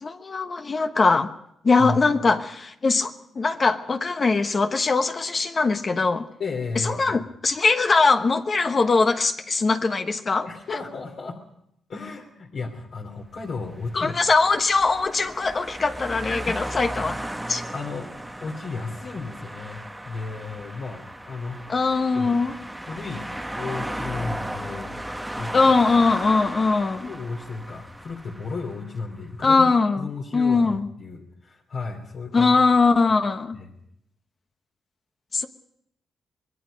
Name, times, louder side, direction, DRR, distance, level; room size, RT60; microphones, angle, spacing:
voice 1, 0.0-1.3 1.6-6.3 6.8-10.4 13.9-17.2 17.5-17.6 21.7-22.5 25.5-27.1 29.4-30.9 32.3-33.6 35.3-35.5, left 4 dB, 35° left, 1.1 m, -21 dB
voice 2, 6.4-7.2 10.4-11.4 11.9-14.2 16.5-16.6 17.5-18.1 18.4-21.6 22.1-22.3 22.8-25.0 25.4-25.5 27.0-32.6 33.5-33.7, left 4 dB, 60° left, 3.1 m, -34 dB
sound 1, 13.6-29.0, right 1 dB, 5° right, 1.1 m, -36 dB
25.5 x 20.5 x 5.3 m
cardioid pair, 105°, 0 cm